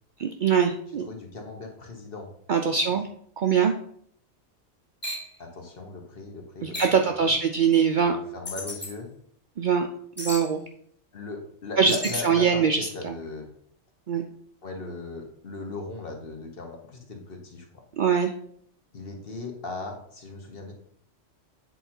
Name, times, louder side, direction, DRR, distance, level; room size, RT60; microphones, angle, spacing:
voice 1, 0.2-1.0 2.5-3.1 3.4-3.7 6.6-8.2 9.6-9.9 10.2-10.6 11.8-12.0 12.2-13.1 14.1-14.3 18.0-18.3, right 6 dB, 60° right, 4 dB, 0.5 m, -22 dB
voice 2, 1.0-2.3 2.7-2.8 5.4-7.3 8.0-9.1 11.1-13.5 14.6-17.8 18.9-20.7, left 3 dB, 50° left, 2 dB, 1.4 m, -38 dB
sound 1, 5.0-5.3 6.7-7.1 8.5-8.9 10.2-10.5 11.9-12.2, left 1 dB, 10° left, 1.6 m, -34 dB
8.0 x 3.9 x 4.4 m, 0.65 s
omnidirectional pair, 1.2 m